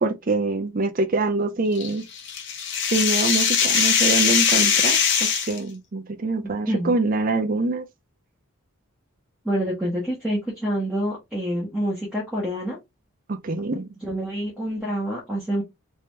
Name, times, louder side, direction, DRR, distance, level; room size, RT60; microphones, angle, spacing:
voice 1, 0.0-2.0 2.9-7.8 13.4-13.9, right 3 dB, 40° right, 0.5 m, -25 dB
sound 1, 1.8-5.6, left 7 dB, 55° left, 0.9 m, -21 dB
voice 2, 6.4-6.9 9.4-12.8 14.0-15.6, equal, 5° right, 1.2 m, -27 dB
3.4 x 2.9 x 3.2 m
head